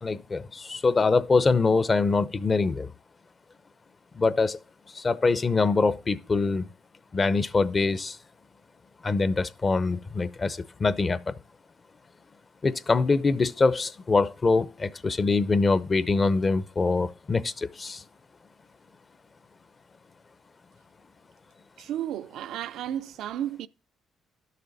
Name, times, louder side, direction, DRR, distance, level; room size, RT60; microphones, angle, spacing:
voice 1, 0.0-2.9 4.1-4.6 4.9-6.7 7.1-8.2 9.0-11.3 12.6-18.0, left 4 dB, 35° left, 0.7 m, -24 dB
voice 2, 21.8-23.7, right 11 dB, 85° right, 0.4 m, -33 dB
11.5 x 6.8 x 4.0 m
cardioid pair, 90°, 0 cm